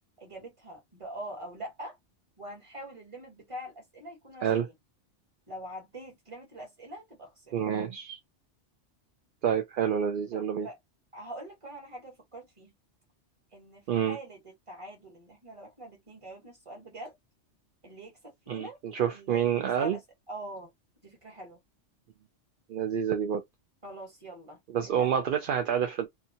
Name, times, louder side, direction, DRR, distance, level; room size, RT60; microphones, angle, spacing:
voice 1, 0.2-2.0 2.4-4.7 5.5-7.5 10.3-10.8 11.1-12.7 13.5-17.1 17.8-18.8 19.1-20.0 20.3-20.7 21.0-21.6 23.8-25.1, right 1 dB, 25° right, 1.3 m, -44 dB
voice 2, 7.5-8.2 9.4-10.7 13.9-14.2 18.5-20.0 22.7-23.4 24.7-26.1, right 8 dB, 60° right, 0.6 m, -28 dB
2.7 x 2.3 x 2.7 m
omnidirectional pair, 1.2 m